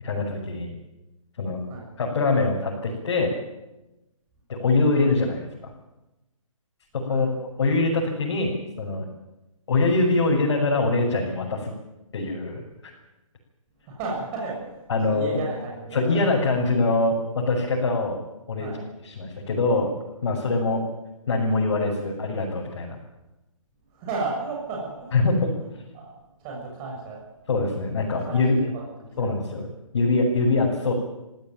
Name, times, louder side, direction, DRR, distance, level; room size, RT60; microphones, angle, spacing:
voice 1, 0.0-0.8 1.4-1.6 2.0-3.3 4.5-5.7 6.9-9.1 9.7-11.7 12.1-12.9 14.9-15.4 15.9-18.2 18.5-18.7 19.0-19.9 20.2-20.8 21.3-22.9 25.1-25.5 27.5-28.6 29.2-29.7 29.9-30.9, left 3 dB, 50° left, -3 dB, 6.5 m, -23 dB
voice 2, 13.8-16.3 18.6-18.8 20.5-20.6 23.9-25.1 25.9-26.1 26.4-27.2 28.2-29.6, right 3 dB, 20° right, -3 dB, 6.8 m, -34 dB
24.0 x 16.0 x 9.2 m, 0.98 s
hypercardioid pair, 160°, 17 cm